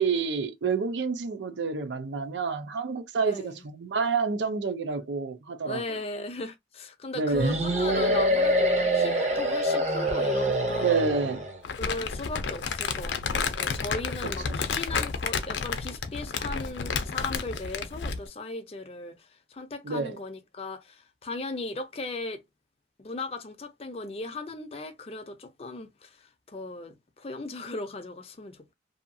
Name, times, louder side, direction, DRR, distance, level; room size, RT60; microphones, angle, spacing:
voice 1, 0.0-6.0 7.2-7.6 10.8-11.5 14.5-14.6 19.8-20.2, right 5 dB, 90° right, 0.5 m, -28 dB
voice 2, 3.2-3.7 5.7-11.1 11.8-22.4 23.0-28.7, left 2 dB, 35° left, 0.5 m, -37 dB
Monster roar, 7.4-11.6, right 1 dB, 40° right, 0.7 m, -25 dB
Crumpling crinkling, 11.6-18.3, left 5 dB, 90° left, 0.5 m, -31 dB
2.7 x 2.3 x 2.6 m
head